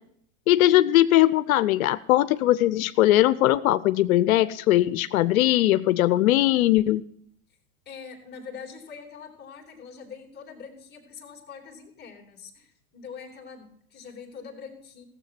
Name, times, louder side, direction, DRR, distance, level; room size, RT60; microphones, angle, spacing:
voice 1, 0.5-7.0, left 14 dB, 85° left, 15 dB, 0.7 m, -20 dB
voice 2, 7.8-15.1, left 6 dB, 25° left, 0 dB, 3.1 m, -43 dB
15.5 x 7.5 x 5.8 m, 0.66 s
supercardioid pair, 120°, 41 cm